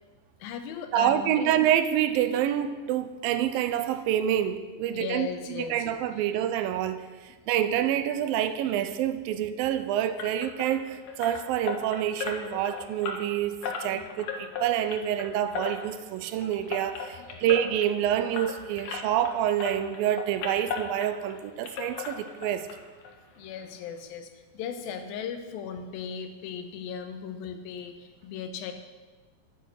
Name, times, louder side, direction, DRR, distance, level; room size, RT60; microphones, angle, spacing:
voice 1, 0.4-1.5 4.9-6.3 13.8-14.1 17.2-17.4 23.4-28.7, left 7 dB, 80° left, 8 dB, 2.7 m, -38 dB
voice 2, 0.9-5.3 5.6-22.7, right 10 dB, 85° right, 11 dB, 2.4 m, -27 dB
sound 1, 10.2-19.3 19.6-21.4 21.6-22.8 23.0-23.1 23.6-23.7 24.0-24.1, left 5 dB, 65° left, 2.7 m, -37 dB
10.5 x 10.0 x 6.5 m, 1.3 s
omnidirectional pair, 4.2 m